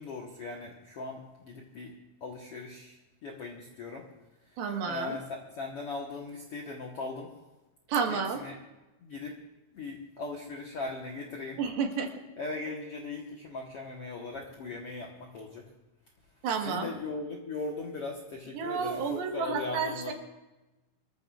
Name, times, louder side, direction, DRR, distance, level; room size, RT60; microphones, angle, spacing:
voice 1, 0.0-1.9 2.2-4.0 4.9-7.3 8.1-8.6 9.0-9.4 9.7-11.6 12.4-15.7 16.6-20.1, left 3 dB, 65° left, -1 dB, 1.4 m, -39 dB
voice 2, 4.6-5.2 7.9-8.4 11.6-12.1 16.4-16.9 18.5-20.1, right 6 dB, 80° right, 3 dB, 3.2 m, -31 dB
24.0 x 14.0 x 2.4 m, 1.1 s
omnidirectional pair, 4.4 m